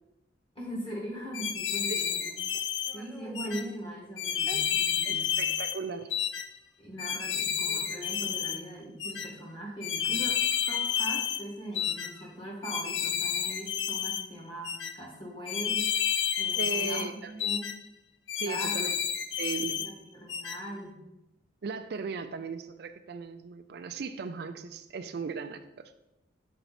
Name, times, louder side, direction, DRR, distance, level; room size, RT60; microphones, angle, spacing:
voice 1, 0.6-2.3 2.9-5.4 6.8-10.4 10.7-15.9 16.4-17.7 18.4-18.9 19.8-21.0, right 1 dB, 30° left, -3 dB, 2.0 m, -40 dB
sound 1, 1.3-2.9 3.3-3.6 4.2-5.8 6.1-6.5 7.0-8.6 9.0-9.3 9.8-11.4 11.7-12.1 12.6-14.2 14.6-14.9 15.5-17.1 17.4-17.7 18.3-19.9 20.3-20.6, left 8 dB, 75° left, 0.5 m, -30 dB
Meow, 2.1-3.7 4.4-4.6 5.5-5.6 5.9-6.2 7.2-7.3 7.7-8.2 8.8-9.5 10.3-11.1 11.7-12.4, right 1 dB, 5° left, 0.7 m, -51 dB
voice 2, 5.0-6.1 16.6-17.6 18.3-19.0 19.4-19.8 21.6-25.9, right 5 dB, 60° right, 9 dB, 0.4 m, -37 dB
6.7 x 4.5 x 4.2 m, 0.91 s
head